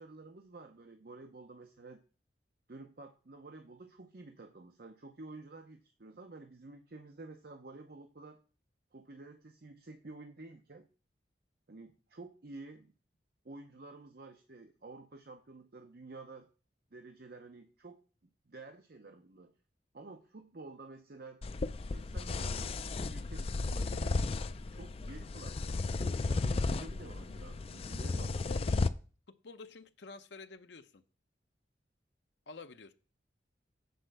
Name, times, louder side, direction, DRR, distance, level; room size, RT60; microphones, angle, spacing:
voice 1, 0.0-2.0 2.7-8.4 8.9-10.9 11.7-12.9 13.4-16.5 16.9-18.0 18.5-19.5 19.9-21.4 21.8-22.8 23.0-24.2 24.5-28.5, right 3 dB, 55° right, 6 dB, 0.7 m, -51 dB
sound 1, 21.4-28.9, left 3 dB, 30° left, 0.3 m, -34 dB
voice 2, 29.4-31.0 32.5-32.9, left 4 dB, 70° left, 8 dB, 0.6 m, -49 dB
7.9 x 4.4 x 6.5 m, 0.37 s
head